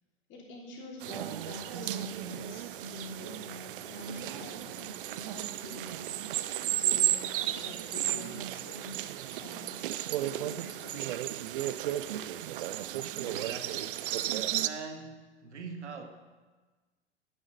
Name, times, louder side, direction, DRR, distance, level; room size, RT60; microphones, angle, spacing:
voice 1, 0.3-6.0 6.6-9.9 10.4-11.2, left 1 dB, 30° left, -2 dB, 3.1 m, -46 dB
sound 1, 1.0-14.7, right 13 dB, 50° right, 0.5 m, -34 dB
voice 2, 13.1-14.1 14.6-16.1, right 4 dB, 70° right, 6 dB, 1.3 m, -43 dB
9.9 x 9.3 x 5.1 m, 1.3 s
figure-of-eight pair, 100°, 36 cm